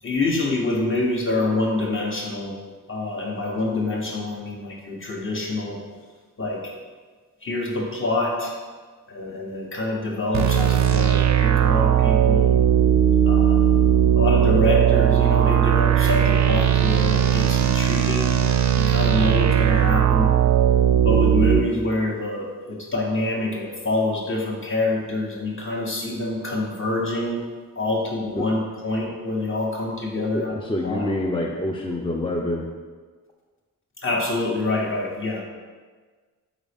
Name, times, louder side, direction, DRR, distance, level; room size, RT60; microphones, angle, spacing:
voice 1, 0.0-2.5 2.9-5.8 6.4-6.7 7.4-8.6 9.1-12.5 13.2-13.7 14.2-18.3 18.8-20.3 21.0-27.4 27.7-30.5 30.8-31.0 34.0-35.4, left 2 dB, 35° left, -2 dB, 1.1 m, -26 dB
sound 1, 10.3-21.6, right 10 dB, 55° right, 0.4 m, -18 dB
voice 2, 30.1-32.7, left 1 dB, 15° left, 0 dB, 0.4 m, -27 dB
4.0 x 3.6 x 3.4 m, 1.5 s
cardioid pair, 55°, 34 cm